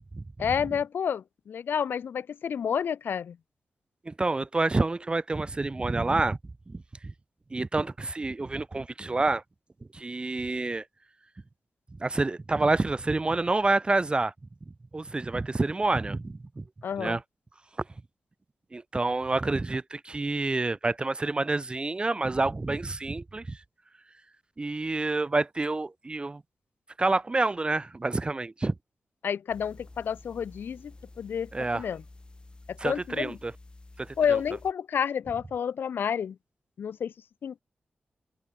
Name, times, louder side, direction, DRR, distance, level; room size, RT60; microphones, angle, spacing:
voice 1, 0.4-3.4 16.8-17.2 29.2-32.0 32.7-33.4 34.2-36.4 36.8-37.1 37.4-37.6, left 7 dB, 85° left, 0.7 m, -30 dB
voice 2, 4.1-6.4 6.7-6.8 7.5-9.4 9.9-10.8 12.0-14.3 14.9-16.6 17.0-17.2 18.7-23.6 24.6-26.4 27.0-28.7 31.5-31.8 32.8-33.5 34.0-34.4, right 2 dB, 30° right, 0.4 m, -28 dB
sound 1, 29.5-34.7, left 2 dB, 25° left, 4.1 m, -50 dB
cardioid pair, 60°, 4 cm